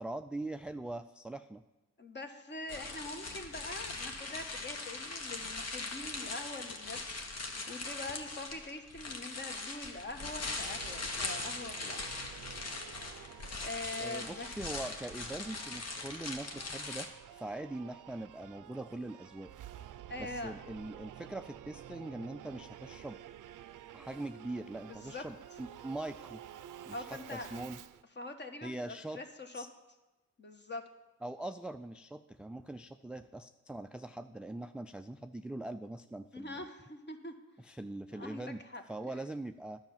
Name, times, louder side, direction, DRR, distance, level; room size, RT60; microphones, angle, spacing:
voice 1, 0.0-1.6 14.0-19.5 20.2-23.2 23.9-26.4 26.9-27.1 27.3-27.8 28.6-29.2 29.5-29.7 31.2-36.6 37.6-38.6 38.9-39.8, right 2 dB, 5° right, 8 dB, 0.3 m, -42 dB
voice 2, 2.0-12.0 13.6-14.6 20.1-20.6 24.9-25.2 26.9-27.6 28.2-29.6 30.4-30.8 36.3-37.3 38.1-38.8 39.1-39.2, left 2 dB, 35° left, 6 dB, 1.3 m, -43 dB
sound 1, 2.7-17.1, left 3 dB, 50° left, 1.3 m, -41 dB
Singing / Musical instrument, 10.7-28.0, right 11 dB, 75° right, 0.5 m, -51 dB
10.5 x 5.7 x 7.2 m, 1.1 s
cardioid pair, 65°, 32 cm